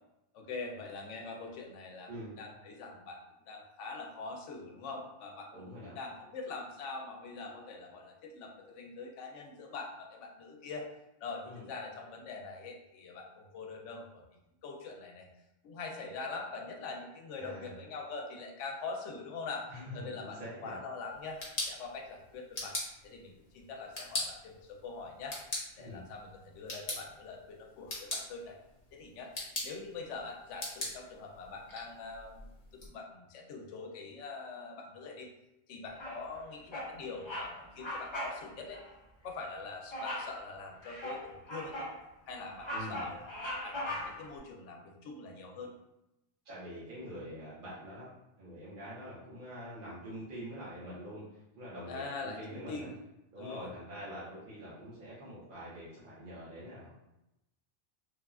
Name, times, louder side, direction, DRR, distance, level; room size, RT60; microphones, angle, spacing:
voice 1, 0.3-2.1 2.4-10.9 11.2-15.3 15.6-22.8 23.0-25.4 25.8-28.6 28.9-29.3 29.6-32.5 32.7-35.3 35.7-38.8 39.2-41.9 42.3-45.7 51.9-52.9 53.4-53.7, left 4 dB, 85° left, 1 dB, 0.9 m, -43 dB
voice 2, 2.1-2.4 5.5-6.0 11.4-11.7 17.3-17.7 19.7-20.7 25.8-26.0 42.7-43.0 46.4-48.1 48.4-52.9 53.3-57.0, equal, 50° right, -10 dB, 0.9 m, -45 dB
sound 1, 21.1-32.9, left 2 dB, 50° left, 0.9 m, -42 dB
Bird vocalization bird call bird song, 36.0-36.4 36.7-36.9 37.2-37.5 37.8-38.4 38.7-38.9 39.9-40.3 40.8-42.0 42.4-44.3, left 1 dB, 35° left, 0.5 m, -39 dB
3.1 x 2.3 x 2.3 m, 0.90 s
omnidirectional pair, 1.2 m